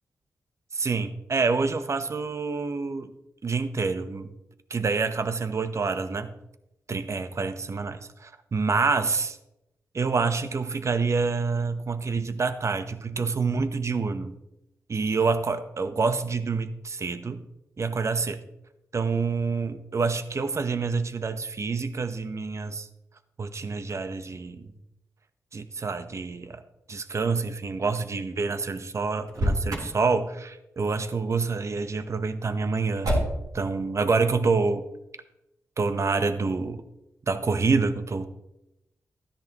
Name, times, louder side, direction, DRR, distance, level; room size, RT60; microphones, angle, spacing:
voice 1, 0.7-3.1 3.4-4.3 4.7-6.3 6.9-9.4 9.9-14.4 14.9-17.4 17.8-18.4 18.9-22.9 23.4-24.7 25.5-26.6 26.9-33.1 33.5-34.8 35.8-36.8 37.3-38.2, right 4 dB, 50° right, 10 dB, 0.9 m, -27 dB
Motor vehicle (road), 29.2-30.0 33.0-33.6, equal, 75° right, 3.7 m, -26 dB
13.0 x 10.0 x 3.0 m, 0.89 s
cardioid pair, 50°, 6 cm